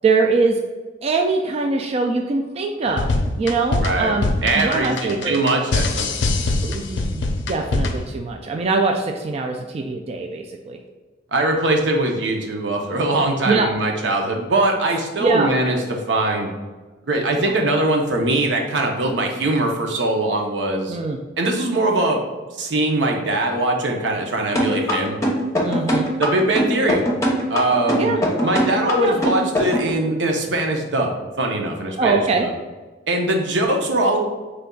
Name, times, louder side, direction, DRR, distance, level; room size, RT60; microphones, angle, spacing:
voice 1, 0.0-0.6 1.0-3.1 3.4-5.4 6.6-10.8 13.5-13.7 15.2-15.5 20.9-21.2 25.6-26.1 28.0-28.2 29.0-29.2 32.0-32.5, right 3 dB, 35° right, 3 dB, 0.3 m, -22 dB
sound 1, 2.9-8.1, left 2 dB, 90° left, 0.5 m, -23 dB
voice 2, 3.8-4.1 4.4-6.4 11.3-15.8 16.1-16.5 17.1-21.0 21.4-22.2 22.5-25.2 26.2-27.0 27.5-28.1 28.4-32.5 33.1-34.2, right 2 dB, 80° right, 2 dB, 0.7 m, -21 dB
sound 2, 24.6-29.9, equal, 15° left, 0.8 m, -21 dB
5.1 x 3.3 x 2.3 m, 1.3 s
head